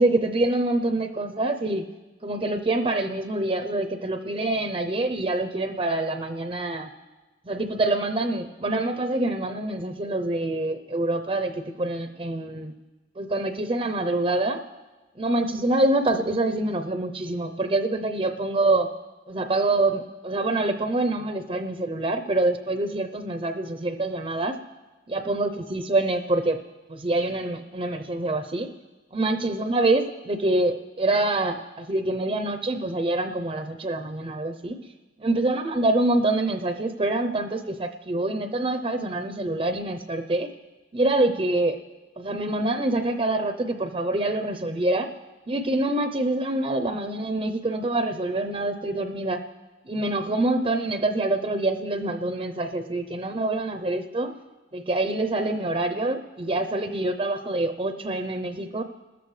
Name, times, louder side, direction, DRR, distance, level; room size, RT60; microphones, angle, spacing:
voice 1, 0.0-1.9 2.2-6.9 7.4-12.7 13.2-14.6 15.2-18.9 19.3-24.6 25.1-26.6 26.9-28.7 29.1-34.9 35.2-40.5 40.9-41.8 42.2-45.1 45.5-49.4 49.8-54.3 54.7-58.8, right 2 dB, 30° right, 6 dB, 0.6 m, -26 dB
30.0 x 14.0 x 3.2 m, 1.2 s
head